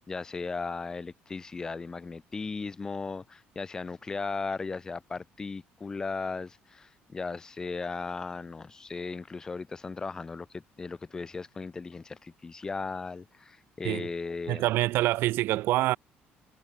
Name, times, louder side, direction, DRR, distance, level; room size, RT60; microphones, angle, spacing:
voice 1, 0.0-14.7, left 4 dB, 15° left, 1.3 m, -37 dB
voice 2, 14.5-16.0, right 16 dB, 65° right, 0.9 m, -26 dB
cardioid pair, 175°, 4 cm